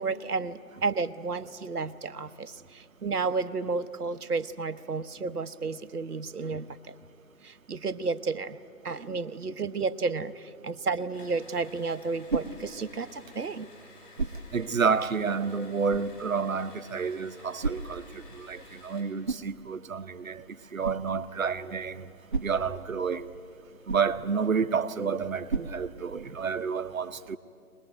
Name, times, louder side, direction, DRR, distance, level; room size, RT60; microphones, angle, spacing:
voice 1, 0.0-6.9 7.4-8.6 8.8-13.7, right 4 dB, 90° right, 1.0 m, -32 dB
sound 1, 11.1-19.1, left 3 dB, 35° left, 5.3 m, -53 dB
sound 2, 11.6-26.5, right 4 dB, 35° right, 0.8 m, -39 dB
voice 2, 14.5-18.0 18.3-20.4 20.7-22.1 22.4-23.3 23.9-27.4, right 5 dB, 65° right, 1.0 m, -29 dB
23.5 x 20.0 x 9.1 m
figure-of-eight pair, 160°, 45 cm